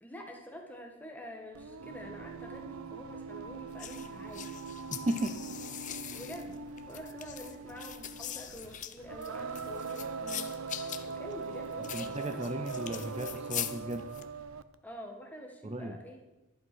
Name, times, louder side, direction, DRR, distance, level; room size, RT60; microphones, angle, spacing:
voice 1, 0.0-4.5 6.1-12.7 14.8-16.2, equal, 5° left, 1 dB, 1.8 m, -47 dB
Singing, 1.5-14.7, right 4 dB, 75° right, 0.7 m, -41 dB
sound 1, 3.8-14.2, left 11 dB, 35° left, 0.7 m, -42 dB
voice 2, 4.9-5.4 6.0-6.2 11.9-14.1 15.6-16.0, right 1 dB, 30° right, 7 dB, 0.6 m, -35 dB
11.5 x 11.0 x 6.3 m, 1.0 s
head